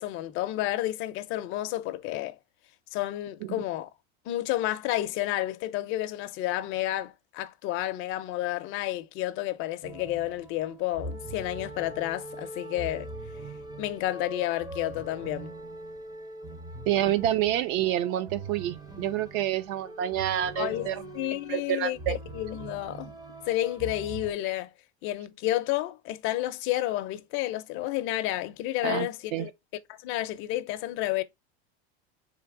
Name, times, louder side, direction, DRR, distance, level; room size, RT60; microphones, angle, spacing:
voice 1, 0.0-2.4 2.9-3.9 4.3-13.1 13.8-15.5 20.6-20.9 21.1-23.2 23.5-24.7 25.0-29.5 29.9-31.2, left 15 dB, 40° left, 0.5 m, -31 dB
sound 1, 9.8-24.3, right 2 dB, 10° right, 0.5 m, -42 dB
voice 2, 16.9-21.0 21.5-22.2 28.8-29.5, right 12 dB, 60° right, 0.5 m, -28 dB
3.4 x 2.7 x 3.6 m
supercardioid pair, 135°, 33 cm